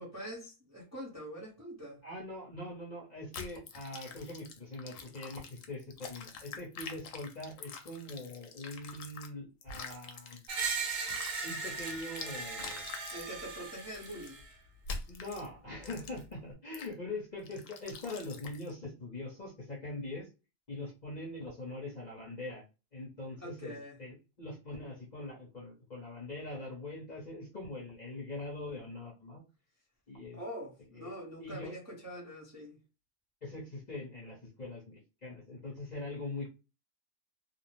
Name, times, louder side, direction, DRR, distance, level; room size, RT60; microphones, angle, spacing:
voice 1, 0.0-2.0 13.1-14.4 23.4-24.0 30.3-32.8, equal, 15° right, 0.6 m, -44 dB
voice 2, 2.0-10.4 10.7-10.8 11.4-12.8 15.1-20.3 20.7-22.6 22.9-29.4 30.1-30.4 30.9-31.1 31.4-31.7 33.4-36.5, left 2 dB, 40° left, 0.8 m, -42 dB
sound 1, 3.3-9.3 9.6-13.3 13.9-14.3 14.8-15.5 15.8-16.3 16.7-16.9 17.5-18.7, left 5 dB, 70° left, 0.9 m, -46 dB
Screech, 10.5-14.5, right 5 dB, 75° right, 1.0 m, -38 dB
2.6 x 2.0 x 3.0 m
omnidirectional pair, 1.4 m